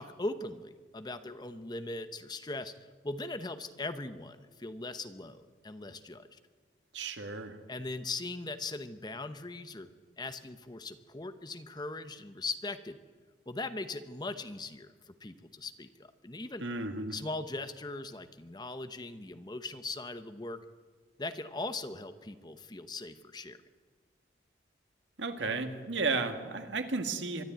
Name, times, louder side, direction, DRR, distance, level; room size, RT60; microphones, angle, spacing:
voice 1, 0.0-6.4 7.7-9.9 10.2-13.0 13.5-16.7 17.1-20.6 21.2-23.6, left 2 dB, 25° left, 10 dB, 0.9 m, -40 dB
voice 2, 6.9-7.6 16.6-17.2 25.2-27.4, right 3 dB, 85° right, 7 dB, 1.9 m, -33 dB
23.5 x 12.0 x 9.4 m, 1.5 s
head